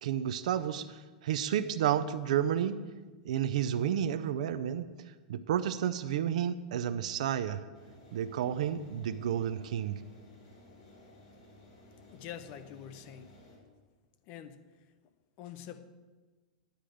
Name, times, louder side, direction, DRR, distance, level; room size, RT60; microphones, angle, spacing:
voice 1, 0.0-2.8 3.2-7.6 8.1-10.0, right 10 dB, 65° right, 11 dB, 0.5 m, -31 dB
sound 1, 7.7-13.6, left 1 dB, 50° left, 3.8 m, -56 dB
voice 2, 12.1-13.3 14.3-14.8 15.4-15.9, left 10 dB, 30° left, 11 dB, 0.6 m, -46 dB
10.0 x 5.0 x 7.7 m, 1.3 s
supercardioid pair, 170°, 4 cm